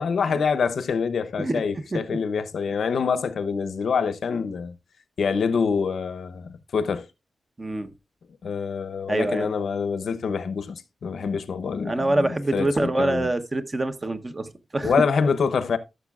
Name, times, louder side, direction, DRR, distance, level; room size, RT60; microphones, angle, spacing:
voice 1, 0.0-4.7 5.2-7.0 8.4-13.3 14.8-15.8, left 5 dB, 80° left, 0.7 m, -26 dB
voice 2, 7.6-7.9 9.1-9.5 11.8-14.9, right 2 dB, 25° right, 0.8 m, -25 dB
14.0 x 6.7 x 2.3 m
wide cardioid pair, 140°, 0 cm